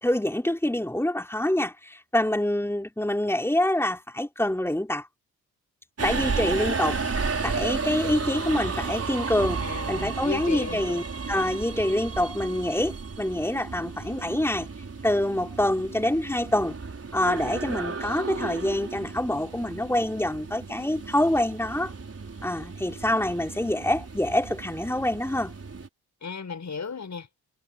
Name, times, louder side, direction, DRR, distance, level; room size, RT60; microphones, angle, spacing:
voice 1, 0.0-5.1 6.0-14.7 15.0-16.8 17.1-21.9 22.4-25.5, left 1 dB, 5° left, 4.2 m, -26 dB
Subway metro underground, 6.0-25.9, right 4 dB, 35° right, 5.7 m, -33 dB
voice 2, 9.6-11.0 26.2-27.3, left 5 dB, 45° left, 7.6 m, -35 dB
hypercardioid pair, 45°, 40 cm